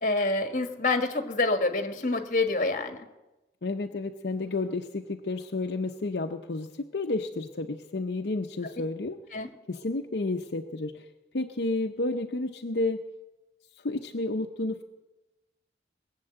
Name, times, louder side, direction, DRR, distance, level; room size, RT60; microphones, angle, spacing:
voice 1, 0.0-3.0 9.3-9.5, left 2 dB, 45° left, 7 dB, 1.5 m, -27 dB
voice 2, 3.6-9.2 9.7-11.0 11.3-13.0 13.8-14.8, left 2 dB, 70° left, 4 dB, 0.7 m, -31 dB
21.0 x 7.4 x 7.9 m, 1.0 s
head